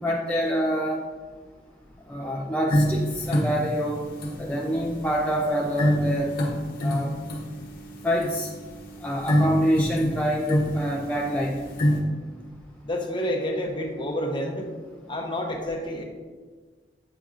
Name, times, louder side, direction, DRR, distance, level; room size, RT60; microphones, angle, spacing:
voice 1, 0.0-1.0 2.1-4.1 4.4-6.3 6.8-7.1 8.0-8.5 9.0-11.6, equal, 10° left, -3 dB, 0.4 m, -26 dB
sound 1, 2.7-12.0, equal, 55° left, 1.0 m, -27 dB
voice 2, 12.8-14.7 15.1-16.0, left 1 dB, 30° left, 1 dB, 0.8 m, -29 dB
8.0 x 5.8 x 2.5 m, 1.4 s
head